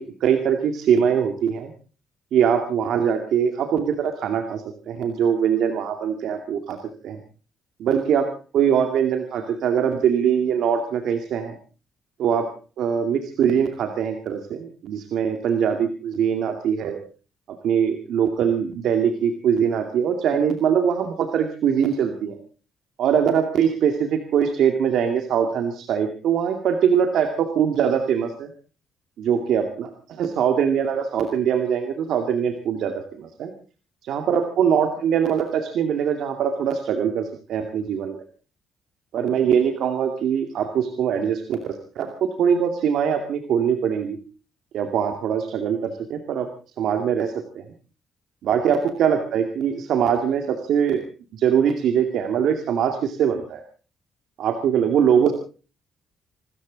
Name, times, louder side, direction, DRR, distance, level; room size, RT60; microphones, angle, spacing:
voice 1, 0.0-1.7 2.3-6.8 7.0-7.2 7.8-8.3 8.5-11.6 12.2-12.5 12.8-17.0 17.5-22.4 23.0-28.5 29.2-33.5 34.0-38.2 39.1-44.2 44.7-46.5 46.8-47.6 48.4-51.0 51.3-53.6 54.4-55.3, right 8 dB, 75° right, 6 dB, 2.3 m, -22 dB
26.0 x 14.0 x 4.0 m, 0.36 s
cardioid pair, 90°, 0 cm